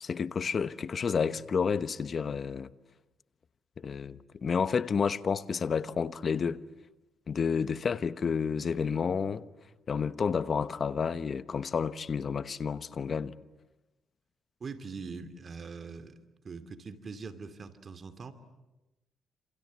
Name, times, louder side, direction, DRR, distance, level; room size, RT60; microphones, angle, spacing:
voice 1, 0.0-2.7 3.8-6.6 7.3-9.5 9.9-13.3, left 6 dB, 45° left, 1.0 m, -30 dB
voice 2, 14.6-16.2 16.4-18.3, right 4 dB, 40° right, 2.6 m, -42 dB
28.5 x 27.5 x 7.5 m
cardioid pair, 90°, 0 cm